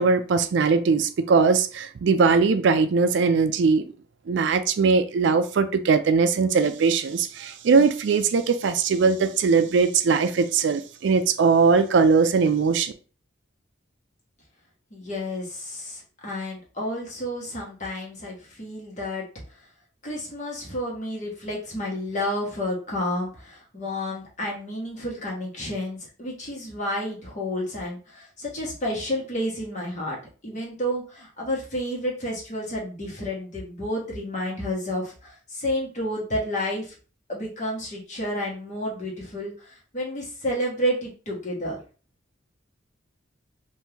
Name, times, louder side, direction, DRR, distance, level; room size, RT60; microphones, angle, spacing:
voice 1, 0.0-3.9 4.3-12.9, right 5 dB, 65° right, 0.3 m, -20 dB
voice 2, 14.9-19.3 20.0-30.2 30.4-36.9 37.3-41.8, left 1 dB, 40° left, 1.2 m, -30 dB
3.5 x 2.6 x 2.9 m
head